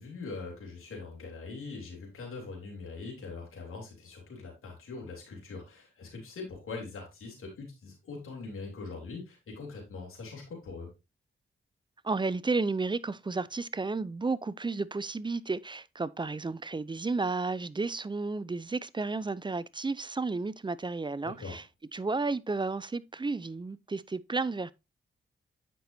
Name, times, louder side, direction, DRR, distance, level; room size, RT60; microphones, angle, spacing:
voice 1, 0.0-10.9 21.2-21.6, left 4 dB, 85° left, 3.0 m, -42 dB
voice 2, 12.0-21.6 21.9-24.7, right 3 dB, 20° right, 0.4 m, -32 dB
8.3 x 6.0 x 2.7 m
cardioid pair, 60°, 21 cm